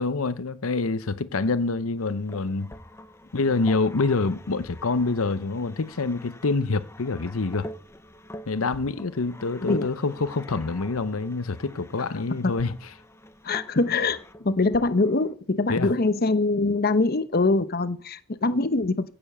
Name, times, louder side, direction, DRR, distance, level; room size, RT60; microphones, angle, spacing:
voice 1, 0.0-2.7 3.3-7.7 8.5-12.7 15.7-15.9, left 3 dB, 90° left, 0.8 m, -26 dB
sound 1, 2.0-15.3, left 1 dB, 10° left, 0.7 m, -45 dB
voice 2, 9.6-9.9 12.0-12.5 13.4-19.1, left 3 dB, 45° left, 0.8 m, -24 dB
16.0 x 7.0 x 6.8 m
head